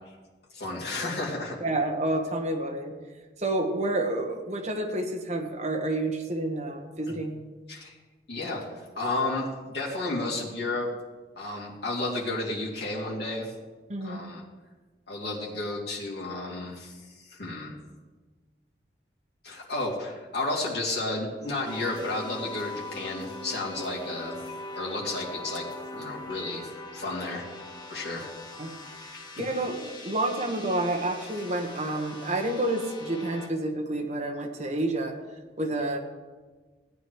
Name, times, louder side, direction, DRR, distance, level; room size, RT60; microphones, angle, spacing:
voice 1, 0.5-1.6 7.1-7.2 7.7-8.0 8.3-10.9 11.4-13.5 14.0-14.4 15.1-16.9 17.2-17.7 19.4-24.4 24.7-25.6 25.9-27.4 27.9-28.2, left 2 dB, 65° left, -5 dB, 2.8 m, -32 dB
voice 2, 1.6-2.9 3.4-7.3 13.9-14.2 28.6-28.7 29.0-35.1 35.6-36.0, right 2 dB, 40° right, 1 dB, 1.4 m, -29 dB
sound 1, 21.6-33.5, left 2 dB, 25° left, 1.2 m, -41 dB
17.0 x 9.5 x 3.2 m, 1.3 s
head